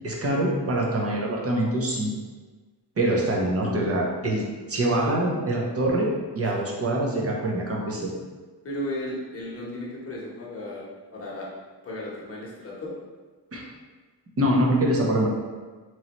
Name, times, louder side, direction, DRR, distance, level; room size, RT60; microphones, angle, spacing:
voice 1, 0.0-2.1 3.0-4.4 4.7-6.1 6.4-8.1 13.5-13.6 14.4-15.3, right 1 dB, 35° right, -2 dB, 0.7 m, -24 dB
voice 2, 8.6-10.8 11.1-11.5 11.8-12.9, left 1 dB, 30° left, -6 dB, 0.9 m, -34 dB
3.9 x 3.1 x 3.0 m, 1.4 s
wide cardioid pair, 155°, 42 cm